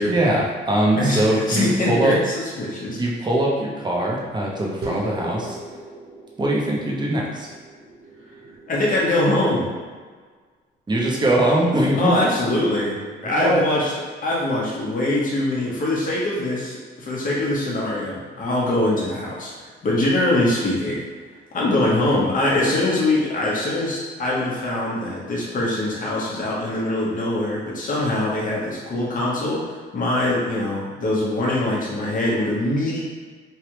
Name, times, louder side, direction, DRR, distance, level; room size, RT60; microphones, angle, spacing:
voice 1, 0.0-2.1 3.0-5.6 6.4-7.5 10.9-12.3 13.2-13.6, right 1 dB, 20° right, -3 dB, 0.8 m, -21 dB
voice 2, 1.0-3.0 8.7-9.7 12.0-13.0 13.2-13.9 14.2-21.0 21.5-33.0, left 1 dB, 45° left, -5 dB, 1.1 m, -23 dB
sound 1, 4.8-9.6, right 1 dB, 55° right, 0.8 m, -39 dB
3.3 x 2.3 x 3.0 m, 1.5 s
cardioid pair, 90°, 20 cm